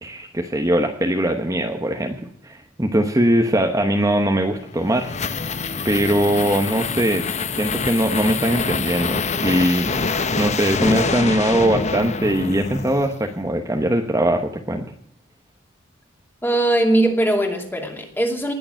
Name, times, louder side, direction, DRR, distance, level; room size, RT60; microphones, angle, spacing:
voice 1, 0.0-5.1 5.8-7.3 7.6-14.8, right 1 dB, 15° right, 3 dB, 1.1 m, -21 dB
sound 1, 4.5-13.3, left 4 dB, 35° left, 0.9 m, -26 dB
voice 2, 16.4-18.5, right 1 dB, 10° left, 3 dB, 2.5 m, -20 dB
19.5 x 6.9 x 8.9 m, 0.71 s
head